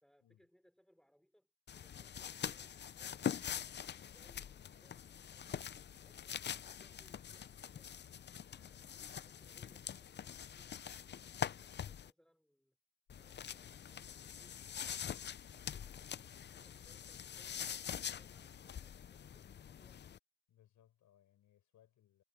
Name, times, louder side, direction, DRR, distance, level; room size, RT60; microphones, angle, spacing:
voice 1, 0.0-5.8 6.0-8.0 8.4-12.8 13.1-15.1 15.5-20.1, equal, ahead, 3.3 m, -71 dB
sound 1, 1.7-12.1 13.1-20.2, left 8 dB, 35° left, 0.5 m, -44 dB
voice 2, 20.5-22.2, left 11 dB, 75° left, 6.0 m, -69 dB
cardioid pair, 90°, 30 cm